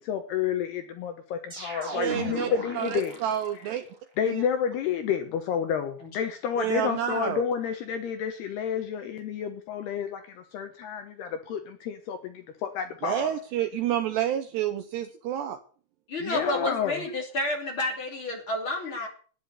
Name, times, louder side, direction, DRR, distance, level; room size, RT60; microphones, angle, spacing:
voice 1, 0.0-3.2 4.2-13.4 16.2-17.0, left 8 dB, 70° left, 7 dB, 2.6 m, -30 dB
sound 1, 1.5-3.7, right 2 dB, 15° right, 2.6 m, -37 dB
voice 2, 1.9-2.5 2.8-3.9 4.3-4.5 6.6-7.4 13.0-15.6, right 11 dB, 75° right, 9 dB, 2.6 m, -29 dB
voice 3, 16.1-19.1, left 1 dB, 30° left, 2 dB, 2.7 m, -30 dB
13.0 x 10.0 x 8.2 m, 0.42 s
omnidirectional pair, 5.8 m